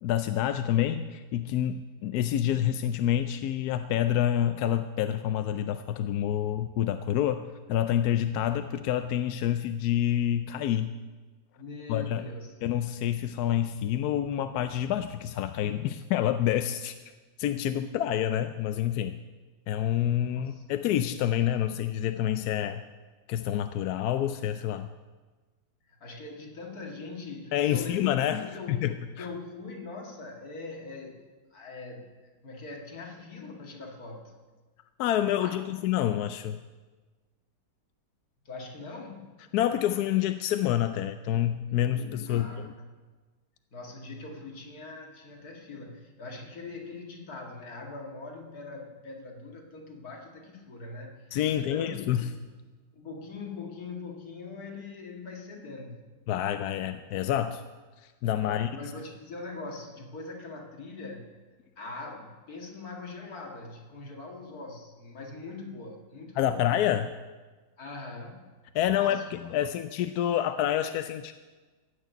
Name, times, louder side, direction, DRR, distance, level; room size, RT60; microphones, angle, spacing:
voice 1, 0.0-10.9 11.9-12.2 12.6-16.9 17.4-19.1 19.7-22.8 23.3-24.9 27.5-29.3 35.0-36.6 39.5-42.7 51.3-52.3 56.3-57.6 58.2-58.7 66.4-67.1 68.7-71.3, left 11 dB, 70° left, 9 dB, 1.0 m, -28 dB
voice 2, 11.6-12.6 20.4-20.6 25.9-28.8 29.2-31.2 31.5-32.1 32.4-34.3 35.4-35.6 38.5-39.3 42.3-42.9 43.7-52.3 52.9-56.0 58.4-61.3 61.8-66.6 67.8-68.5 68.9-69.5, left 3 dB, 55° left, 1 dB, 2.5 m, -42 dB
15.5 x 6.6 x 9.1 m, 1.3 s
omnidirectional pair, 1.9 m